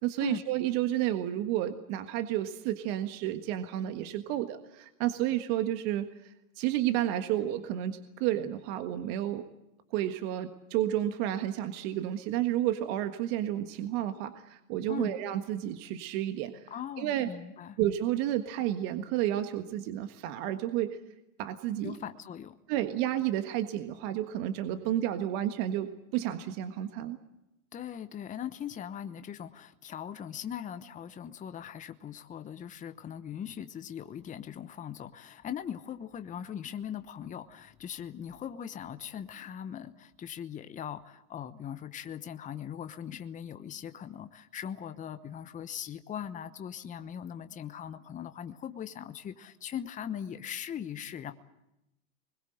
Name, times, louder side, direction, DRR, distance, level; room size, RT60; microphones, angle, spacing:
voice 1, 0.0-9.5 9.9-16.6 17.0-17.3 17.8-21.0 21.4-22.0 22.7-27.2, right 12 dB, 45° right, 8 dB, 1.6 m, -31 dB
voice 2, 16.7-17.8 21.8-22.6 27.7-51.3, left 9 dB, 15° left, 10 dB, 1.0 m, -40 dB
24.0 x 21.5 x 7.9 m, 0.89 s
hypercardioid pair, 120°, 44 cm